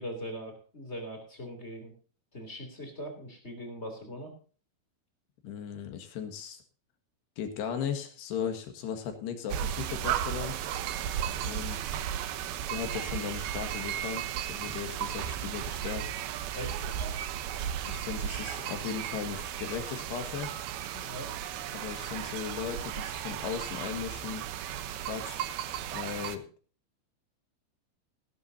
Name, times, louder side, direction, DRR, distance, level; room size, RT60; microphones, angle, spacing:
voice 1, 0.0-1.9 2.3-4.3 16.5-17.2 20.9-21.3, equal, 20° left, 4 dB, 2.2 m, -41 dB
voice 2, 5.4-6.6 7.4-10.6 11.4-12.0 12.7-16.1 17.8-20.5 21.7-24.4 25.0-25.4 25.9-26.4, left 8 dB, 65° left, 7 dB, 3.5 m, -37 dB
sound 1, 9.5-26.4, right 10 dB, 85° right, 2.1 m, -35 dB
18.0 x 12.0 x 2.7 m, 0.39 s
omnidirectional pair, 5.7 m